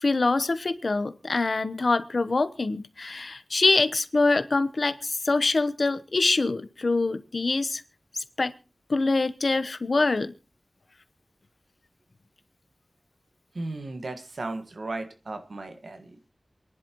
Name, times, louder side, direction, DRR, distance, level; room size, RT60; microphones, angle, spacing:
voice 1, 0.0-7.8 8.1-8.5 8.9-10.3, left 3 dB, 65° left, 12 dB, 1.0 m, -25 dB
voice 2, 13.5-16.3, right 2 dB, 80° right, 6 dB, 1.7 m, -36 dB
27.5 x 10.5 x 3.0 m, 0.33 s
wide cardioid pair, 80°, 0 cm